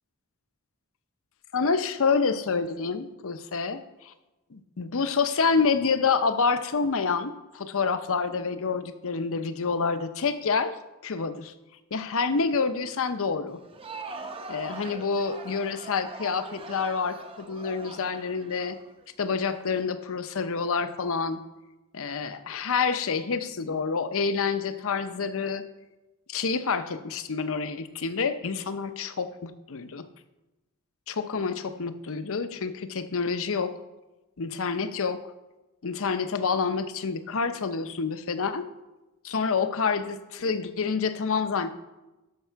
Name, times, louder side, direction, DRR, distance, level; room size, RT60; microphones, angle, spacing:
voice 1, 1.5-4.1 4.5-10.8 11.0-11.5 11.9-13.6 14.5-18.8 19.2-21.4 21.9-25.6 26.3-30.1 31.1-33.7 34.4-35.2 35.8-38.7 39.2-41.7, left 5 dB, 65° left, 10 dB, 0.7 m, -28 dB
Crowd, 13.5-19.4, right 3 dB, 25° right, 0.7 m, -42 dB
12.0 x 6.0 x 4.6 m, 1.0 s
head